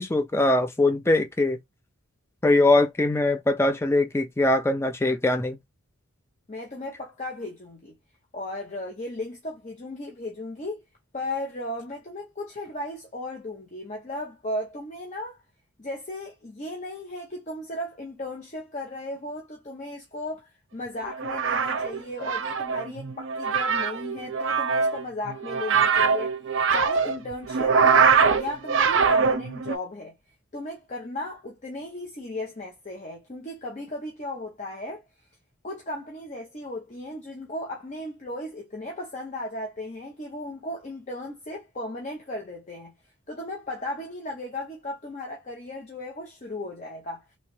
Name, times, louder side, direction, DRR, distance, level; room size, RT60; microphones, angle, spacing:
voice 1, 0.0-1.6 2.4-5.6, left 2 dB, 10° left, 0.4 m, -22 dB
voice 2, 6.5-8.0 8.3-10.8 11.1-15.4 15.8-26.3 26.7-30.2 30.5-35.0 35.6-42.9 43.3-47.2, left 1 dB, 35° left, 0.7 m, -36 dB
sound 1, 21.1-29.8, right 5 dB, 60° right, 0.5 m, -23 dB
3.2 x 2.8 x 3.0 m
head